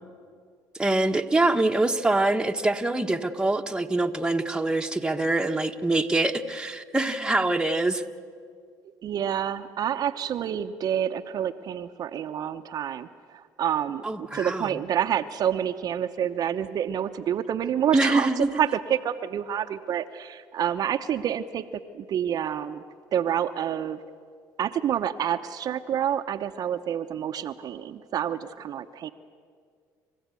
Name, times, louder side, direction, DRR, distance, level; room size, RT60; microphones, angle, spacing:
voice 1, 0.8-8.0 14.0-14.8 17.9-18.5, right 2 dB, 10° right, 5 dB, 1.2 m, -24 dB
voice 2, 9.0-21.6 21.9-22.8 23.1-24.0 24.6-29.1, right 9 dB, 55° right, 7 dB, 0.8 m, -28 dB
28.5 x 15.0 x 8.3 m, 2.1 s
supercardioid pair, 80°, 8 cm